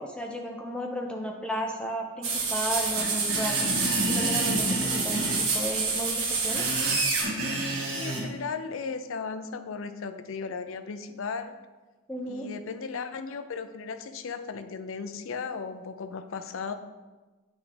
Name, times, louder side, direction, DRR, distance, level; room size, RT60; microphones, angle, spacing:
voice 1, 0.0-3.6 4.1-6.8 12.1-12.5, equal, 5° left, 1 dB, 0.5 m, -34 dB
sound 1, 2.2-7.2, right 4 dB, 85° right, 1.4 m, -28 dB
Screech, 2.9-5.4 6.3-8.2, right 1 dB, 65° right, 1.8 m, -30 dB
voice 2, 3.4-3.8 7.9-11.6 12.3-16.7, left 5 dB, 65° left, 9 dB, 0.4 m, -36 dB
9.1 x 3.5 x 3.3 m, 1.3 s
head